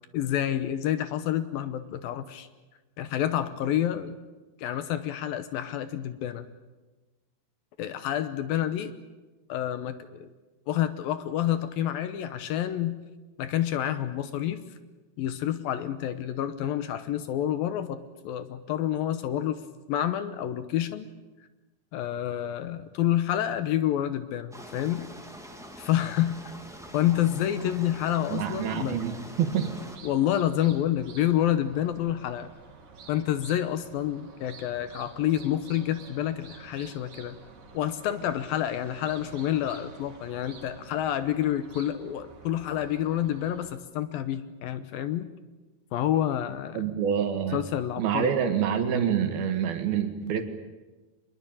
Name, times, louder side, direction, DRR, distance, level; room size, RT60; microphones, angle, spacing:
voice 1, 0.1-2.5 3.0-4.2 4.6-6.5 7.8-8.9 9.5-10.3 10.7-13.0 13.4-14.6 15.2-19.6 19.9-21.1 21.9-25.1 25.8-26.6 26.9-29.0 30.0-32.5 33.1-37.4 37.7-45.3 45.9-46.8 47.5-48.4, left 11 dB, 75° left, 11 dB, 2.5 m, -28 dB
sound 1, 24.5-30.0, equal, ahead, 1.9 m, -45 dB
sound 2, 27.6-43.7, right 4 dB, 50° right, 3.7 m, -49 dB
voice 2, 28.3-29.8 46.8-47.6 48.0-50.4, right 8 dB, 70° right, 7 dB, 3.6 m, -27 dB
24.5 x 21.5 x 8.9 m, 1.2 s
omnidirectional pair, 4.6 m